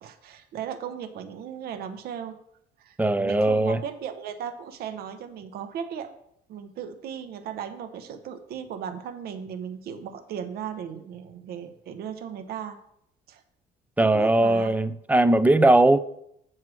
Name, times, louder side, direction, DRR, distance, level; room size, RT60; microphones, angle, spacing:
voice 1, 0.0-2.4 2.8-6.1 6.5-12.8 13.3-13.4 14.0-14.7, right 8 dB, 65° right, 0.7 m, -36 dB
voice 2, 3.0-3.8 14.0-16.0, right 2 dB, 10° right, 0.4 m, -19 dB
7.5 x 4.6 x 6.1 m
cardioid pair, 110°, 17 cm